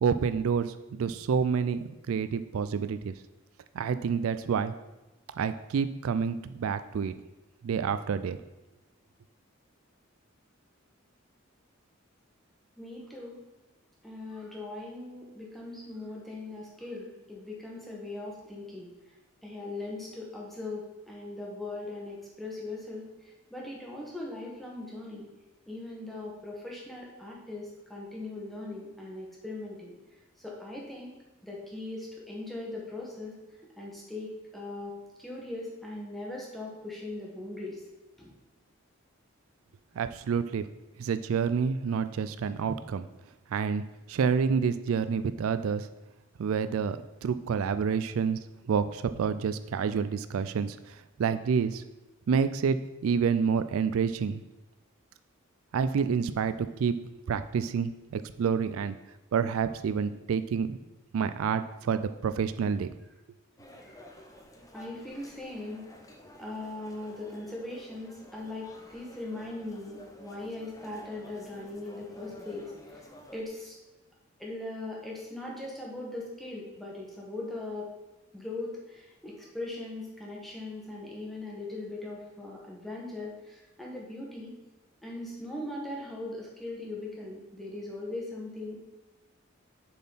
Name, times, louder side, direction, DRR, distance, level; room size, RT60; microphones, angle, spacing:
voice 1, 0.0-3.1 3.7-4.7 5.4-7.1 7.6-8.4 40.0-40.7 41.0-43.1 43.5-45.9 46.4-48.4 48.6-51.8 52.3-52.8 53.0-54.4 55.7-57.0 57.3-58.9 59.3-60.8 61.1-62.9, right 6 dB, 80° right, 12 dB, 0.3 m, -28 dB
voice 2, 12.7-13.4 14.0-18.9 19.4-25.3 25.7-29.9 30.4-33.4 33.8-34.9 35.2-37.8 38.2-38.3 63.8-64.0 64.7-65.9 66.3-73.1 73.3-73.8 74.4-77.9 78.3-84.6 85.0-88.8, left 2 dB, ahead, -3 dB, 1.5 m, -40 dB
sound 1, 63.6-73.4, equal, 15° left, 0.6 m, -51 dB
6.8 x 4.3 x 5.6 m, 1.1 s
head